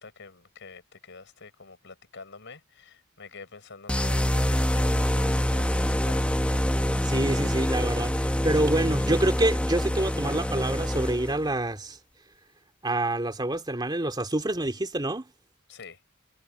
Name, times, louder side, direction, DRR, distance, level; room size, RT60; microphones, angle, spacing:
voice 1, 0.0-6.4 15.7-16.0, left 4 dB, 60° left, 5.8 m, -47 dB
sound 1, 3.9-11.5, equal, 5° left, 0.9 m, -26 dB
voice 2, 7.0-12.0 12.8-15.3, right 1 dB, 20° right, 2.7 m, -27 dB
head